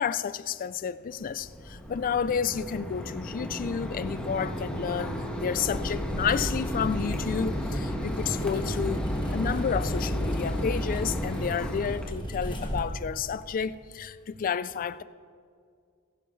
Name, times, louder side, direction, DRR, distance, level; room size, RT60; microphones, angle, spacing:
voice 1, 0.0-9.0 9.3-15.0, left 7 dB, 40° left, 0.3 m, -31 dB
Mechanisms, 1.1-12.1, equal, 5° left, 1.3 m, -34 dB
sound 1, 4.6-11.5, left 1 dB, 60° left, 3.9 m, -48 dB
sound 2, 5.6-12.8, equal, 20° left, 1.5 m, -33 dB
19.0 x 11.5 x 3.2 m
head